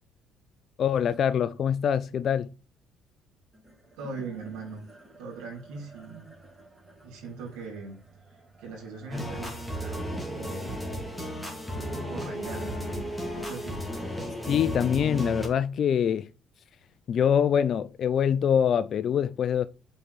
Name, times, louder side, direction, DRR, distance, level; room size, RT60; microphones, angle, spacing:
voice 1, 0.8-2.5 14.5-16.3 17.1-19.7, left 8 dB, 55° left, 0.3 m, -24 dB
sound 1, 3.5-14.0, right 2 dB, 15° right, 2.6 m, -52 dB
voice 2, 4.0-4.8 5.2-6.3 7.0-8.0 8.6-9.5 9.8-10.8 11.8-13.0 13.3-13.9, right 3 dB, 85° right, 2.5 m, -40 dB
sound 2, 9.1-15.5, equal, 5° left, 2.3 m, -34 dB
5.4 x 4.4 x 4.0 m
supercardioid pair, 80°, 0 cm